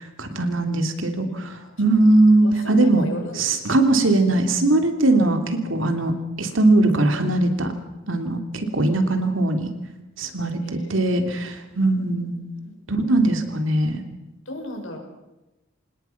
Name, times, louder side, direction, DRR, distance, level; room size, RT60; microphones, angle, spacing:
voice 1, 0.0-3.1 3.3-7.7 8.1-9.7 10.2-12.4 12.9-14.0, right 2 dB, 70° right, 7 dB, 3.1 m, -20 dB
voice 2, 2.4-3.4 10.6-10.9 11.7-12.8 14.5-15.0, left 1 dB, 70° left, 3 dB, 5.8 m, -37 dB
26.0 x 20.0 x 6.0 m, 1.0 s
head